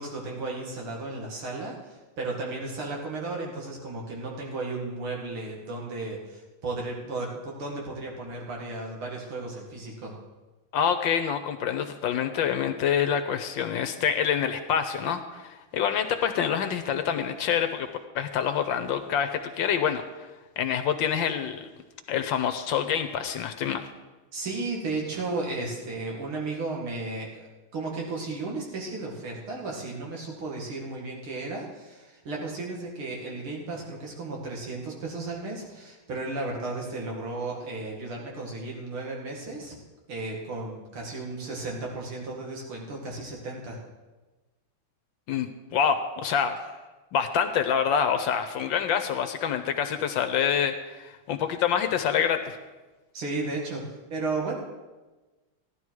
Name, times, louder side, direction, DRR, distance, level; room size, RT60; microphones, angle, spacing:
voice 1, 0.0-10.2 24.3-27.5 27.7-39.7 40.1-43.8 53.1-54.5, right 3 dB, 70° right, -2 dB, 3.0 m, -34 dB
voice 2, 10.7-17.9 18.1-20.3 20.6-21.7 22.1-23.8 45.3-46.7 47.1-52.6, left 8 dB, 70° left, 8 dB, 1.3 m, -26 dB
15.0 x 11.0 x 4.7 m, 1.2 s
omnidirectional pair, 2.4 m